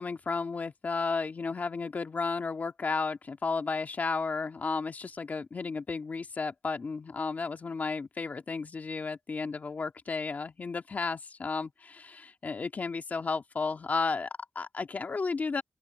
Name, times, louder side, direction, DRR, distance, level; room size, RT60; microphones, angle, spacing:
voice 1, 0.0-15.6, left 4 dB, 60° left, 2.3 m, -33 dB
open air
cardioid pair, 45°, 3 cm